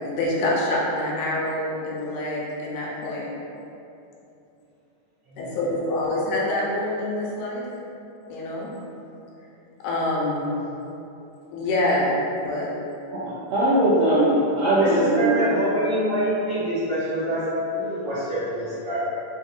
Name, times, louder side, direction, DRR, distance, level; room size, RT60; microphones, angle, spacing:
voice 1, 0.0-3.3 5.4-7.7 8.3-8.7 9.8-10.5 11.5-12.7, left 1 dB, 85° left, -5 dB, 2.0 m, -26 dB
voice 2, 13.1-15.3, right 1 dB, 85° right, -9 dB, 1.5 m, -20 dB
voice 3, 14.6-19.0, right 1 dB, 45° right, -14 dB, 1.7 m, -26 dB
4.2 x 4.1 x 2.3 m, 2.9 s
omnidirectional pair, 3.6 m